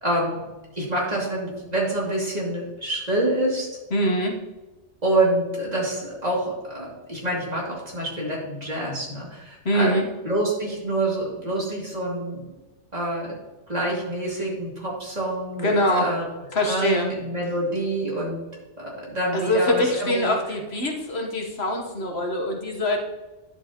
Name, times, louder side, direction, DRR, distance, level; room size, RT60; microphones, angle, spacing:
voice 1, 0.0-0.4 0.7-3.7 5.0-10.0 10.2-12.6 12.9-13.4 13.7-16.2 16.7-18.4 18.8-20.3, right 1 dB, 35° right, -5 dB, 2.8 m, -26 dB
voice 2, 3.9-4.4 9.6-10.1 15.6-16.1 16.5-17.1 19.3-23.0, left 1 dB, 65° left, 1 dB, 1.4 m, -23 dB
10.0 x 7.6 x 2.9 m, 1.1 s
omnidirectional pair, 1.2 m